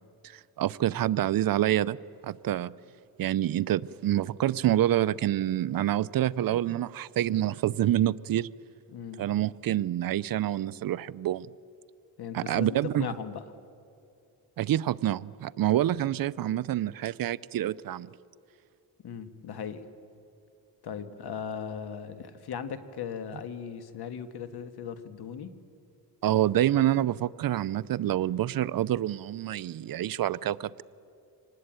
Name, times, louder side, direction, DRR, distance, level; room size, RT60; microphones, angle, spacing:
voice 1, 0.2-2.0 2.2-2.7 3.2-8.5 9.2-11.5 12.3-13.1 14.6-18.1 26.2-30.8, right 12 dB, 65° right, 18 dB, 0.6 m, -27 dB
voice 2, 8.9-9.2 12.2-13.4 19.0-19.8 20.8-25.5, left 7 dB, 80° left, 10 dB, 1.6 m, -38 dB
25.0 x 19.5 x 9.0 m, 2.6 s
cardioid pair, 110°, 38 cm